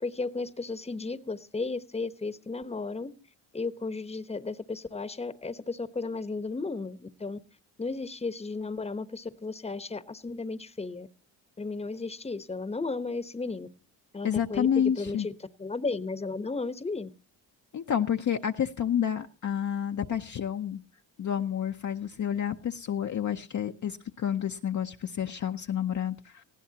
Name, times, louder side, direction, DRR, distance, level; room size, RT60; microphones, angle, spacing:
voice 1, 0.0-3.1 3.5-7.4 7.8-11.1 11.6-13.7 14.1-14.7 15.0-15.3 15.6-17.1, left 3 dB, 15° left, 13 dB, 1.0 m, -34 dB
voice 2, 14.2-15.3 17.7-20.8 21.2-26.4, left 9 dB, 40° left, 5 dB, 0.7 m, -29 dB
19.0 x 15.5 x 2.9 m, 0.34 s
supercardioid pair, 75°, 45 cm